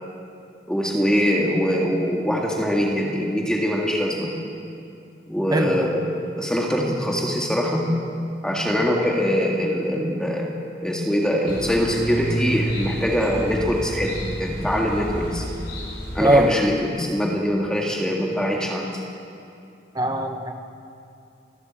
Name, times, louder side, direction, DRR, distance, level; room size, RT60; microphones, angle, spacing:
voice 1, 0.7-4.3 5.3-6.0 6.4-7.9 8.4-10.5 10.8-15.4 16.1-19.0, equal, 5° left, -1 dB, 2.0 m, -23 dB
voice 2, 5.5-5.9 16.2-16.5 19.9-20.6, right 1 dB, 20° right, 6 dB, 1.1 m, -20 dB
sound 1, 11.5-16.5, equal, 80° left, 4.2 m, -30 dB
29.0 x 12.5 x 7.6 m, 2.6 s
head